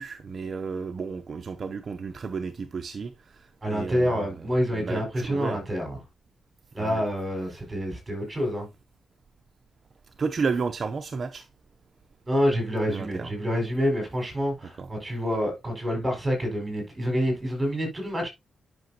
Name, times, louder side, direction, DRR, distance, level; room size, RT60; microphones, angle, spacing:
voice 1, 0.0-4.3 4.7-5.6 6.8-7.0 10.2-11.5 12.9-13.3 14.8-14.9, right 5 dB, 40° right, 0.6 m, -32 dB
voice 2, 3.6-6.0 6.7-8.7 12.3-18.3, equal, 15° right, 5.0 m, -27 dB
10.5 x 5.9 x 2.8 m
wide cardioid pair, 145°, 0 cm